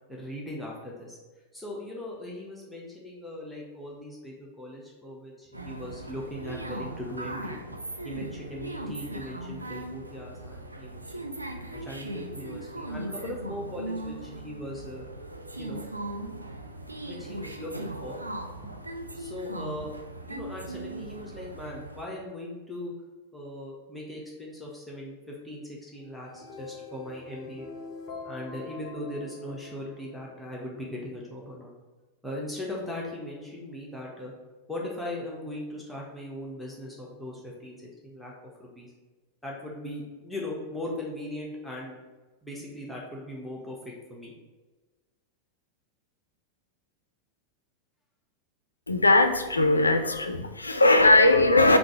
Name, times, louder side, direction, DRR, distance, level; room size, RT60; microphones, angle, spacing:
voice 1, 0.1-1.2 1.5-7.6 8.0-11.3 11.7-15.1 15.6-15.8 17.0-18.3 19.1-19.9 20.2-22.9 23.3-27.7 28.2-31.7 32.2-34.3 34.7-38.3 38.6-38.9 39.4-42.0 42.4-44.3, left 1 dB, 5° left, -4 dB, 0.8 m, -39 dB
sound 1, 5.5-22.0, right 1 dB, 85° right, 0.4 m, -38 dB
sound 2, 26.1-30.4, left 4 dB, 35° left, 0.7 m, -43 dB
voice 2, 48.9-51.8, left 2 dB, 80° left, 7 dB, 0.4 m, -19 dB
3.8 x 2.4 x 4.5 m, 1.3 s
figure-of-eight pair, 90°, 0 cm